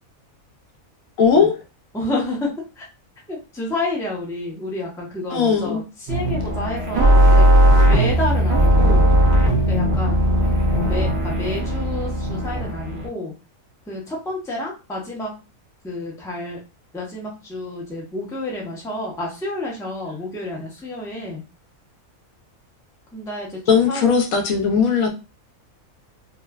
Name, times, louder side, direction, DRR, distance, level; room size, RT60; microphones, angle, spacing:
voice 1, 1.2-1.5 5.3-5.8 23.7-25.1, left 6 dB, 80° left, 4 dB, 1.1 m, -18 dB
voice 2, 1.9-2.9 3.3-9.1 9.7-10.2 10.7-13.3 13.9-15.3 15.8-16.6 16.9-21.4 23.1-23.6 23.9-24.0, left 2 dB, 5° left, -3 dB, 0.5 m, -29 dB
sound 1, 6.1-13.1, equal, 50° right, 0.8 m, -17 dB
3.0 x 2.1 x 2.3 m, 0.30 s
omnidirectional pair, 1.5 m